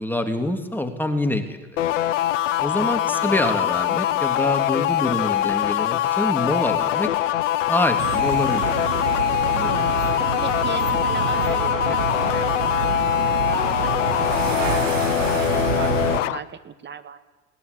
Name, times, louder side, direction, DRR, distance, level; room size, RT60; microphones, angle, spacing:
voice 1, 0.0-1.8 2.6-7.1 7.7-8.7, left 1 dB, 5° left, 5 dB, 2.9 m, -25 dB
sound 1, 1.8-16.4, left 12 dB, 75° left, 0.9 m, -23 dB
voice 2, 2.8-4.0 9.6-12.6 12.8-17.2, right 6 dB, 30° right, 10 dB, 2.0 m, -37 dB
sound 2, 8.0-16.2, right 12 dB, 80° right, 0.8 m, -28 dB
20.0 x 19.5 x 9.9 m, 1.2 s
hypercardioid pair, 80°, 38 cm